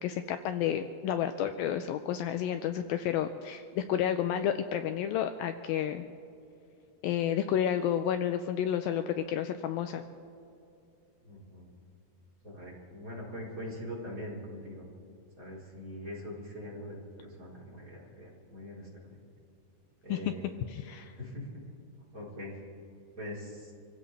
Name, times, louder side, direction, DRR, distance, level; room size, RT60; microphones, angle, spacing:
voice 1, 0.0-6.1 7.0-10.0 20.1-20.2 20.7-21.1, left 9 dB, 90° left, 8 dB, 2.0 m, -31 dB
voice 2, 11.2-11.7 12.4-14.8 15.4-19.2 20.0-20.7 21.2-21.7 22.1-22.6 23.2-23.7, left 1 dB, 20° right, -5 dB, 3.9 m, -42 dB
26.5 x 16.0 x 3.3 m, 2.7 s
omnidirectional pair, 4.8 m